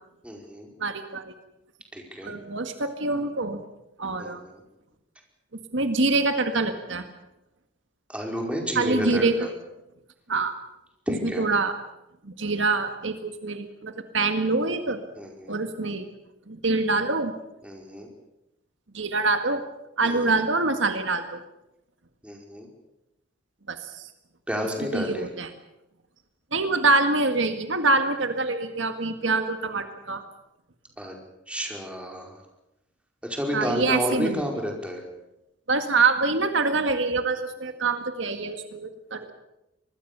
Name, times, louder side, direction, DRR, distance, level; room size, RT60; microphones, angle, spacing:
voice 1, 0.2-0.7 1.9-2.4 4.2-4.6 8.1-9.5 11.1-11.5 15.1-15.6 17.6-18.1 20.0-20.4 22.2-22.7 24.5-25.3 31.0-31.1 31.5-32.4 33.2-35.0, equal, 5° right, 1 dB, 5.0 m, -31 dB
voice 2, 0.8-1.3 2.2-3.6 4.0-4.4 5.7-7.0 8.8-9.5 10.3-10.5 11.4-11.7 12.2-15.0 15.5-16.1 16.5-17.3 18.9-19.6 20.0-21.4 23.7-24.1 24.9-25.5 26.5-30.2 33.5-34.4 35.7-39.3, right 3 dB, 70° right, 7 dB, 1.9 m, -25 dB
25.5 x 20.5 x 6.9 m, 0.90 s
head